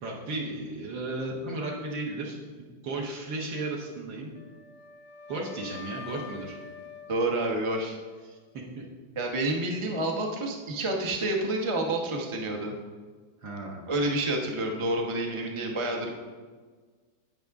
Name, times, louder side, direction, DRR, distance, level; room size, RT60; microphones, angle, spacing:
voice 1, 0.0-4.3 5.3-6.6 8.2-8.4 8.8-8.9 13.4-13.8, right 2 dB, 70° right, -2 dB, 1.9 m, -35 dB
Wind instrument woodwind instrument, 4.3-8.5, left 5 dB, 70° left, 0.8 m, -46 dB
voice 2, 7.1-8.0 9.2-12.7 13.9-16.1, right 2 dB, 30° right, 1 dB, 0.6 m, -29 dB
10.5 x 8.3 x 3.5 m, 1.5 s
omnidirectional pair, 2.2 m